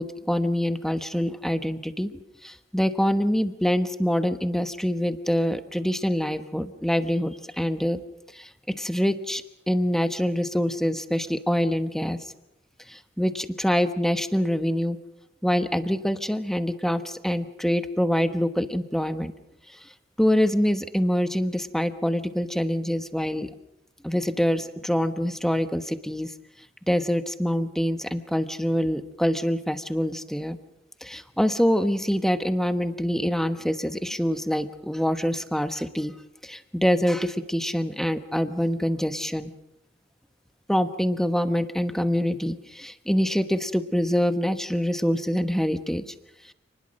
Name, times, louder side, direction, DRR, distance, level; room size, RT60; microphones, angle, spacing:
voice 1, 0.0-8.0 8.3-12.2 12.9-15.0 15.4-19.3 20.2-23.5 24.0-26.3 26.9-30.6 31.0-36.1 36.4-39.5 40.7-46.1 46.5-46.6, equal, ahead, 9 dB, 1.1 m, -25 dB
28.5 x 20.0 x 6.4 m, 0.87 s
head